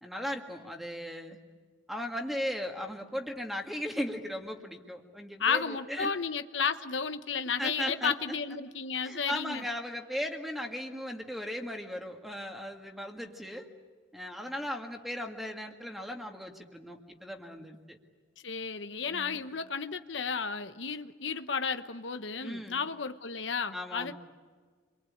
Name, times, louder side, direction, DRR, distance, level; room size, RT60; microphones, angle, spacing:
voice 1, 0.0-1.4 1.9-6.1 7.6-8.4 9.0-13.7 14.1-18.0 19.1-19.4 22.4-22.9 23.7-24.1, equal, ahead, 3 dB, 2.1 m, -37 dB
voice 2, 5.4-9.6 18.4-24.1, left 6 dB, 85° left, 9 dB, 1.1 m, -33 dB
29.0 x 23.5 x 8.7 m, 1.5 s
head